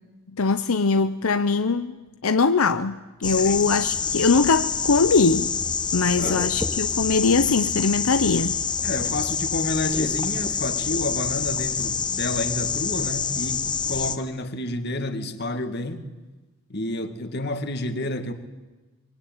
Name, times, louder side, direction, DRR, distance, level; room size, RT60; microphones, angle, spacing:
voice 1, 0.3-5.5 5.9-8.6, left 4 dB, 80° left, 0.8 m, -21 dB
sound 1, 3.2-14.2, left 6 dB, 20° left, 1.0 m, -27 dB
voice 2, 3.4-3.7 6.2-6.4 8.8-16.1 16.7-18.3, left 1 dB, 50° left, 2.1 m, -29 dB
24.5 x 23.0 x 8.9 m
head